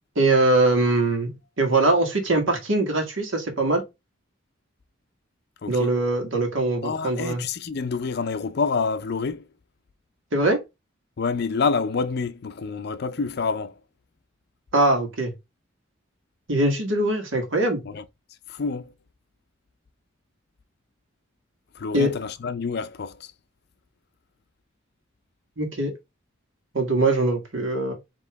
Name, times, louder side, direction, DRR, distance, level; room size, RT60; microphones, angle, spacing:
voice 1, 0.1-1.3 1.6-3.8 5.7-7.4 10.3-10.6 14.7-15.3 16.5-17.8 21.9-22.1 25.6-25.9 26.7-27.9, right 2 dB, 75° right, 1.5 m, -22 dB
voice 2, 5.6-6.0 6.8-9.5 11.2-13.7 17.8-18.0 18.5-18.9 21.8-23.3, left 5 dB, 55° left, 0.5 m, -27 dB
4.7 x 3.0 x 3.4 m
head